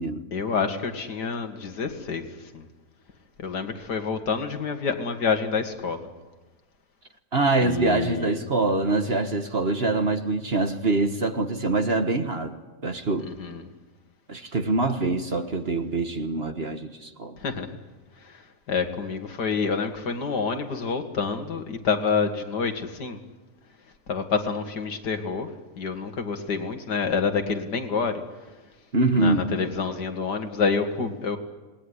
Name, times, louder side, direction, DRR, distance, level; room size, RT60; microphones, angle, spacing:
voice 1, 0.3-2.3 2.5-2.7 3.4-6.1 7.6-8.4 13.2-13.7 17.4-17.7 18.2-23.2 24.1-28.2 29.1-31.4, left 5 dB, 75° left, 6 dB, 2.5 m, -28 dB
voice 2, 7.3-12.6 12.8-13.3 14.3-17.4 28.9-29.4, right 3 dB, 40° right, 7 dB, 1.6 m, -24 dB
27.5 x 20.0 x 9.9 m, 1.2 s
omnidirectional pair, 1.8 m